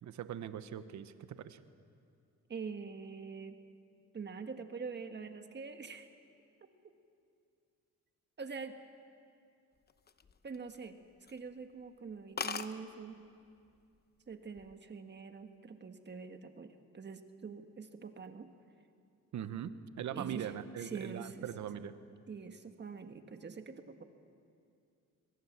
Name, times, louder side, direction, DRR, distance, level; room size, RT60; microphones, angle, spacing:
voice 1, 0.0-1.6 19.3-21.9, right 9 dB, 70° right, 12 dB, 1.2 m, -41 dB
voice 2, 2.5-3.6 4.1-6.1 8.4-8.8 10.4-11.0 11.3-13.2 14.3-18.5 20.1-21.5 22.3-24.0, right 5 dB, 35° right, 7 dB, 1.5 m, -45 dB
sound 1, 9.9-10.9 11.3-11.5 11.8-11.9 12.1-12.2 12.4-12.7 13.6-14.0 14.3-14.7, left 6 dB, 30° left, 1.0 m, -40 dB
23.0 x 22.0 x 7.5 m, 2.4 s
cardioid pair, 90°, 30 cm